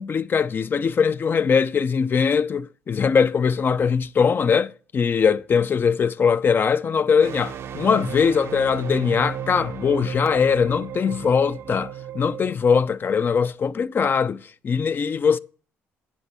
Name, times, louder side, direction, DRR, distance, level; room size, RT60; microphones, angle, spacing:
voice 1, 0.0-15.4, left 6 dB, 45° left, 0.5 m, -21 dB
sound 1, 7.2-12.5, right 8 dB, 60° right, 0.7 m, -34 dB
10.0 x 7.2 x 4.4 m
supercardioid pair, 75°, 5 cm